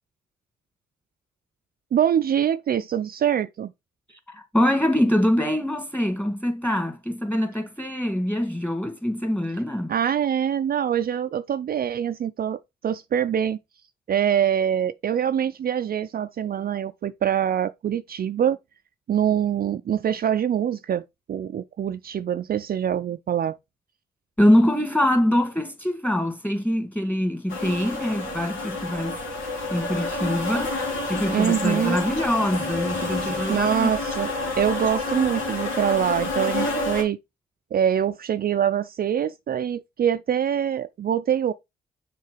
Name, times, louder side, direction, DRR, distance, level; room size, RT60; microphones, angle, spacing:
voice 1, 1.9-3.7 9.9-13.6 14.1-18.6 19.1-21.0 21.3-23.6 31.3-32.0 33.5-34.3 34.6-37.2 37.7-41.5, right 9 dB, 50° right, 0.4 m, -24 dB
voice 2, 4.1-9.9 24.4-29.2 29.7-30.7 31.1-33.9, left 1 dB, 10° left, 2.2 m, -24 dB
sound 1, 27.5-37.0, left 2 dB, 80° left, 2.2 m, -29 dB
6.6 x 3.8 x 4.9 m
supercardioid pair, 60°, 20 cm